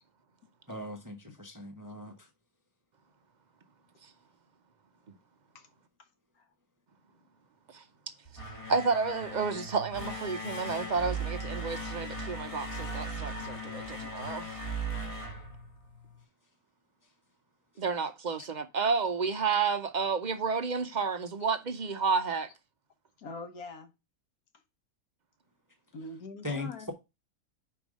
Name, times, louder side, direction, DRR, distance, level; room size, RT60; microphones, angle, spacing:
voice 1, 0.7-2.1 26.4-26.9, left 1 dB, 15° right, 0.8 m, -39 dB
sound 1, 8.2-16.2, right 2 dB, 25° left, 1.2 m, -38 dB
voice 2, 8.7-14.5 17.8-22.5, right 5 dB, 50° right, 0.5 m, -31 dB
voice 3, 23.2-23.9 25.9-26.9, left 3 dB, 75° left, 1.6 m, -44 dB
5.2 x 4.5 x 6.1 m
omnidirectional pair, 1.6 m